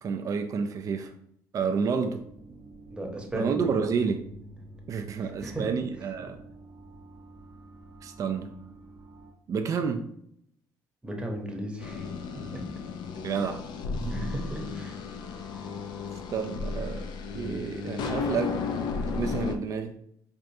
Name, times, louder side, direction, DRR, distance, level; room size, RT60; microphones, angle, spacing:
voice 1, 0.0-1.1 1.5-2.2 3.3-4.3 4.9-6.4 8.0-8.5 9.5-10.1 13.2-13.6 14.0-14.6 16.3-17.1 17.3-18.5 19.1-20.0, right 6 dB, 45° right, 6 dB, 0.4 m, -30 dB
sound 1, 2.0-9.3, right 2 dB, 60° right, 0.8 m, -50 dB
voice 2, 2.9-3.7 5.2-5.6 11.0-12.1 12.5-12.6 14.1-15.0, right 1 dB, 15° right, 1 dB, 0.9 m, -35 dB
Keyboard (musical), 3.8-7.4, left 1 dB, 20° left, 0.6 m, -51 dB
sound 2, 11.8-19.6, left 4 dB, 70° left, 0.5 m, -34 dB
4.6 x 2.4 x 2.6 m, 0.70 s
supercardioid pair, 80°, 8 cm